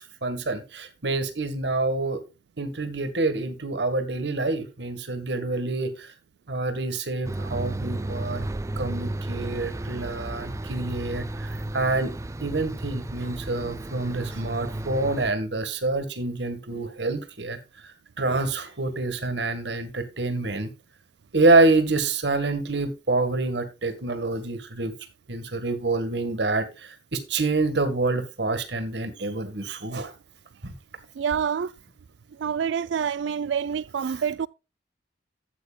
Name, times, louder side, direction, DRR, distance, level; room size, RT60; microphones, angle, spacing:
voice 1, 0.0-2.2 2.6-6.1 6.5-8.4 8.8-12.1 12.4-20.7 21.3-24.9 25.3-30.1 30.6-30.7 34.1-34.2, right 3 dB, 70° right, 1.7 m, -27 dB
sound 1, 7.2-15.3, right 1 dB, 15° right, 0.4 m, -33 dB
voice 2, 31.2-31.7 32.4-34.5, right 7 dB, 90° right, 0.4 m, -27 dB
13.0 x 8.2 x 2.3 m
head